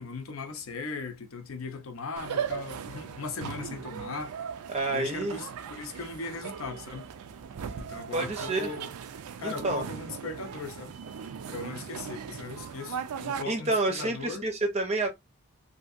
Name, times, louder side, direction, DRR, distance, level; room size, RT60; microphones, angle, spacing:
voice 1, 0.0-4.5 4.9-7.1 7.8-8.9 9.4-10.9 11.5-14.4, left 4 dB, 65° left, 0.5 m, -38 dB
sound 1, 2.2-13.4, right 7 dB, 85° right, 0.4 m, -38 dB
voice 2, 4.7-5.4 8.1-8.8 9.4-9.8 13.4-15.1, right 2 dB, 30° right, 0.5 m, -29 dB
2.8 x 2.6 x 2.5 m
head